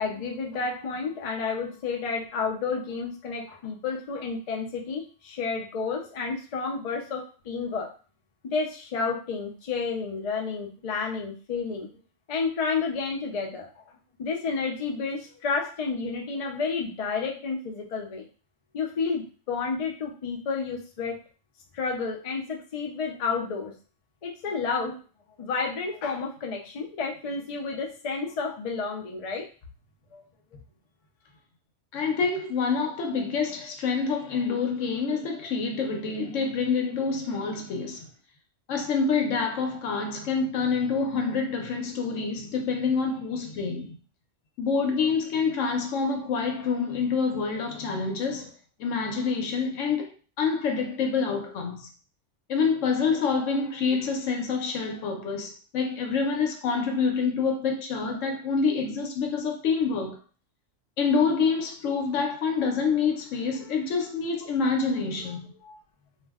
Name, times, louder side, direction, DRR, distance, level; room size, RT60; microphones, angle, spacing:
voice 1, 0.0-7.9 8.4-11.9 12.3-13.8 14.2-18.3 18.7-21.2 21.7-23.7 24.2-25.0 25.4-29.5 30.1-30.2, left 4 dB, 45° left, 0.5 m, -30 dB
voice 2, 31.9-38.1 38.7-44.0 44.6-48.5 48.8-50.1 50.4-51.9 52.5-60.2 61.0-65.8, left 5 dB, 90° left, 1.0 m, -27 dB
2.5 x 2.1 x 3.4 m
omnidirectional pair, 1.2 m